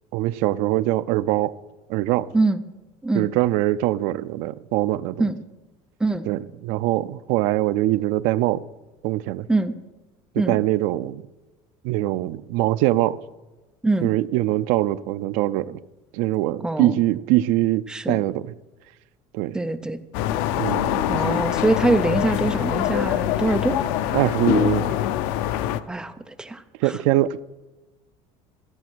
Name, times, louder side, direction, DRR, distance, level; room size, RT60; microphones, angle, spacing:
voice 1, 0.1-1.5 1.9-2.3 3.1-5.3 6.3-8.7 9.0-9.5 10.3-11.2 11.8-13.2 14.0-15.8 16.1-18.4 19.3-19.6 20.6-21.4 24.1-25.0 26.8-27.4, right 16 dB, 70° right, 0.5 m, -23 dB
voice 2, 16.6-16.9 17.9-18.2 19.5-20.0 21.1-23.8 25.9-27.0, right 2 dB, 5° right, 0.5 m, -23 dB
sound 1, 20.1-25.8, left 12 dB, 85° left, 0.6 m, -24 dB
14.5 x 8.5 x 6.2 m
cardioid pair, 175°, 13 cm